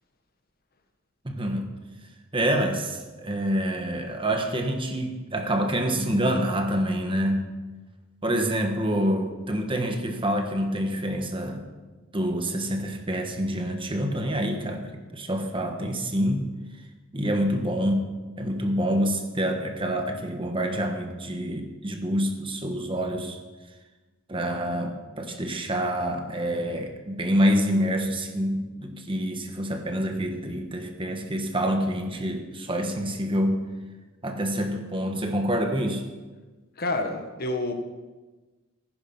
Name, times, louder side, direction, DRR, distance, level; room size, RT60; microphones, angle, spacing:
voice 1, 1.2-1.7 2.3-7.4 8.2-11.6 12.1-16.5 17.1-18.0 18.4-23.4 24.3-33.6 34.2-36.0, equal, 25° right, 4 dB, 1.5 m, -27 dB
voice 2, 36.8-37.7, left 2 dB, 50° left, 5 dB, 1.6 m, -28 dB
15.0 x 11.0 x 5.5 m, 1.2 s
head